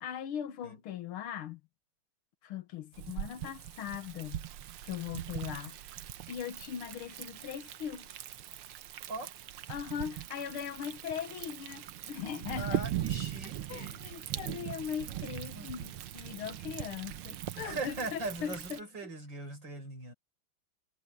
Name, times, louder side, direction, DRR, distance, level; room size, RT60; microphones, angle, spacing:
voice 1, 0.0-1.6 2.4-4.5 4.8-5.8 6.3-8.1 9.7-12.8 13.7-18.8, left 9 dB, 80° left, 2.0 m, -40 dB
Thunder, 2.9-18.8, right 12 dB, 85° right, 1.8 m, -40 dB
voice 2, 12.6-14.0 15.5-15.7 17.6-20.1, right 2 dB, 55° right, 7.0 m, -40 dB
omnidirectional pair, 2.3 m